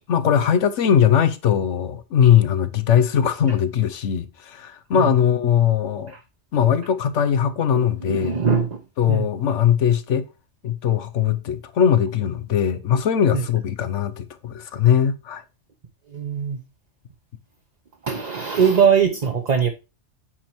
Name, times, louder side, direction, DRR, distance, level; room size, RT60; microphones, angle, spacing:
voice 1, 0.1-6.1 6.5-8.4 9.0-10.2 10.6-15.4, left 9 dB, 85° left, 1.1 m, -20 dB
voice 2, 7.7-8.8 9.1-9.2 13.3-13.4 16.1-16.6 18.0-19.7, right 7 dB, 40° right, 0.9 m, -21 dB
8.6 x 4.4 x 4.5 m
omnidirectional pair, 1.2 m